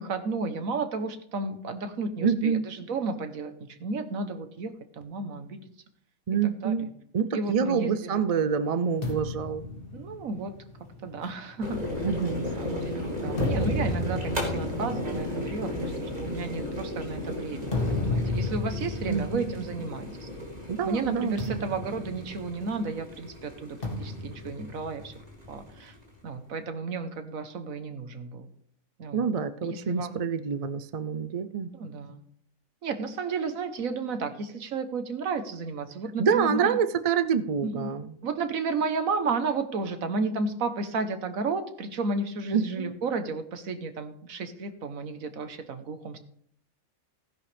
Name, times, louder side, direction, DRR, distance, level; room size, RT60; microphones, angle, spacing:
voice 1, 0.0-5.6 6.6-6.9 7.3-8.5 9.9-10.5 11.0-12.1 12.6-20.3 20.8-25.1 25.5-25.9 26.2-28.5 29.0-29.3 29.6-30.2 31.7-32.2 32.8-36.8 37.6-37.9 38.2-46.2, right 4 dB, 75° right, 9 dB, 1.5 m, -33 dB
voice 2, 2.2-2.7 6.3-6.9 7.1-9.6 12.0-12.5 19.1-19.5 20.7-21.6 29.1-31.7 36.2-38.1 42.5-42.9, right 6 dB, 50° right, 12 dB, 0.4 m, -27 dB
sound 1, 9.0-12.6 13.1-20.6 20.8-21.0 21.4-23.0 23.8-25.6, left 2 dB, 40° left, 2.2 m, -34 dB
sound 2, 11.6-26.1, left 1 dB, 30° right, 3.1 m, -35 dB
16.0 x 10.5 x 3.4 m, 0.65 s
omnidirectional pair, 1.5 m